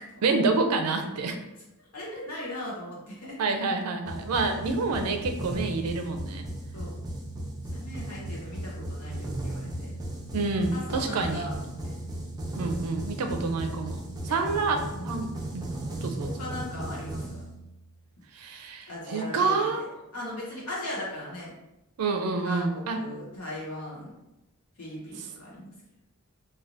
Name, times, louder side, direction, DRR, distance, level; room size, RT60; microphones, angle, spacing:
voice 1, 0.0-1.4 3.4-6.5 10.3-11.4 12.6-15.7 16.0-16.3 18.3-19.8 22.0-23.0, right 3 dB, 80° right, 5 dB, 0.4 m, -28 dB
voice 2, 1.9-3.3 6.7-7.0 7.6-9.9 10.7-11.6 11.8-11.9 14.3-14.6 14.9-15.3 16.2-17.4 18.9-19.9 20.1-21.5 22.4-24.1 24.8-25.7, left 1 dB, 80° left, -5 dB, 1.2 m, -38 dB
sound 1, 4.1-18.0, right 1 dB, 20° right, 0.5 m, -36 dB
3.3 x 2.2 x 2.6 m, 0.94 s
head